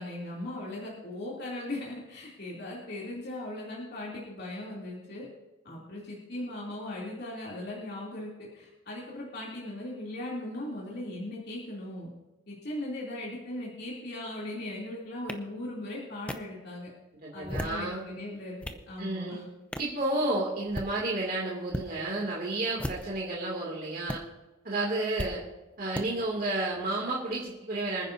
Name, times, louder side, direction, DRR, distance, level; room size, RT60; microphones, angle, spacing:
voice 1, 0.0-5.3 5.6-12.1 12.5-16.9 17.3-18.6 18.9-19.4, left 1 dB, 50° left, -5 dB, 3.0 m, -38 dB
sound 1, 15.3-15.4 16.3-16.4 17.3-17.8 18.4-18.8 19.7-19.9 20.6-20.9 21.7-21.9 22.7-23.2 24.1-24.2 25.2-25.3 25.9-26.1, equal, 5° left, 0.6 m, -35 dB
voice 2, 17.2-18.0 19.0-19.4 19.8-24.2 24.6-25.4 25.8-28.1, right 2 dB, 45° right, -4 dB, 2.6 m, -31 dB
26.0 x 9.9 x 2.7 m, 1.1 s
head